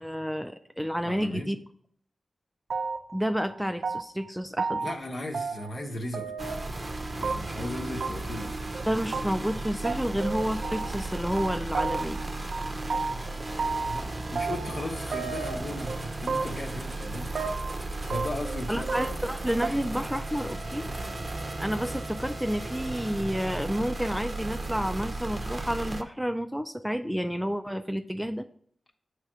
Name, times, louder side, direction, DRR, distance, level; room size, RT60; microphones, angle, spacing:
voice 1, 0.0-1.6 3.1-4.9 8.9-12.2 18.7-20.9 21.6-28.5, equal, ahead, 8 dB, 0.3 m, -30 dB
voice 2, 1.0-1.5 4.8-6.5 7.2-8.6 13.8-17.3 18.0-19.0, left 1 dB, 60° left, 1 dB, 1.0 m, -36 dB
sound 1, 2.7-3.2 3.5-4.3 4.6-5.0 5.3-5.9 6.1-6.7 7.2-7.7 8.0-8.1 8.4-8.5 8.7-8.8 9.1-9.2 9.5-9.6 9.8-11.1 11.4-12.3 12.5-14.0 14.4-14.9 15.1-16.0 16.3-16.7 17.0-17.7 18.1-18.6 18.9-19.3 19.6-19.7, right 4 dB, 75° right, 0.5 m, -32 dB
sound 2, 6.4-26.0, right 2 dB, 30° right, 0.7 m, -35 dB
7.0 x 3.3 x 6.0 m, 0.62 s
wide cardioid pair, 80°, 0 cm